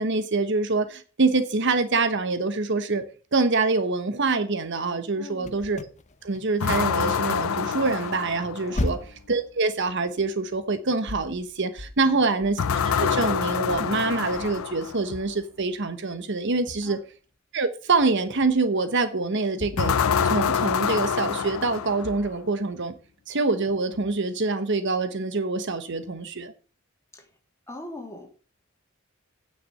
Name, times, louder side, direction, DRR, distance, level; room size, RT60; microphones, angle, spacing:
voice 1, 0.0-3.0 3.3-5.8 6.2-9.0 9.3-12.6 12.8-17.0 17.5-20.0 20.2-22.9 23.3-26.5, right 3 dB, 60° right, 1.1 m, -25 dB
voice 2, 5.1-5.6 8.7-9.0 12.0-12.3 16.8-17.0 27.1-27.3 27.7-28.3, left 1 dB, 15° left, 3.0 m, -42 dB
sound 1, 5.4-7.3 7.6-13.2 13.7-15.9 16.7-17.0 18.0-18.8 19.2-20.6 21.5-21.6 22.0-22.6 23.9-24.2, left 1 dB, 35° left, 0.8 m, -38 dB
sound 2, 6.6-8.9 12.6-15.1 19.8-22.4, left 7 dB, 85° left, 0.6 m, -26 dB
9.5 x 6.7 x 6.6 m
head